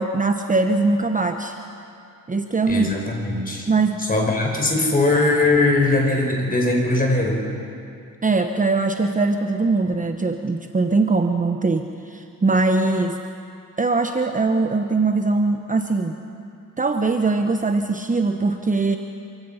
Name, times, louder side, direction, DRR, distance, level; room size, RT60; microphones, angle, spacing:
voice 1, 0.0-1.6 2.3-2.9 3.7-4.0 8.2-13.2 13.8-16.2 16.8-19.0, right 3 dB, 25° right, 6 dB, 1.1 m, -21 dB
voice 2, 2.7-3.7 4.1-7.4, left 2 dB, 25° left, 0 dB, 5.6 m, -20 dB
27.0 x 16.5 x 5.7 m, 2.5 s
supercardioid pair, 65°, 32 cm